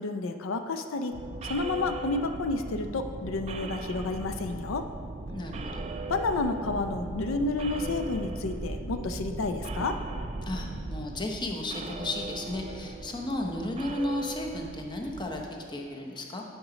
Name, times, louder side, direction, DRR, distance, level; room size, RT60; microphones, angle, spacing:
voice 1, 0.0-4.9 6.1-10.0, left 3 dB, 85° left, 7 dB, 0.5 m, -30 dB
sound 1, 1.1-15.5, right 2 dB, 30° right, 0.4 m, -38 dB
voice 2, 5.3-5.9 10.5-16.4, left 1 dB, 25° left, 1 dB, 0.8 m, -34 dB
9.3 x 5.1 x 5.0 m, 2.4 s
head